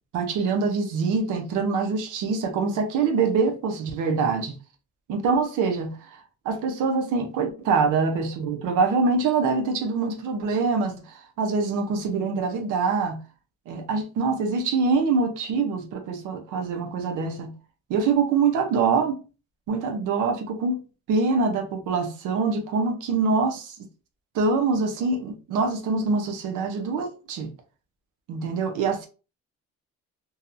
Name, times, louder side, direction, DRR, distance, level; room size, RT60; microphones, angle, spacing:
voice 1, 0.1-4.6 5.1-13.2 13.7-17.5 17.9-19.2 19.7-23.9 24.3-27.5 28.3-29.1, right 4 dB, 90° right, 0.7 m, -24 dB
2.7 x 2.3 x 2.5 m
cardioid pair, 90°, 30 cm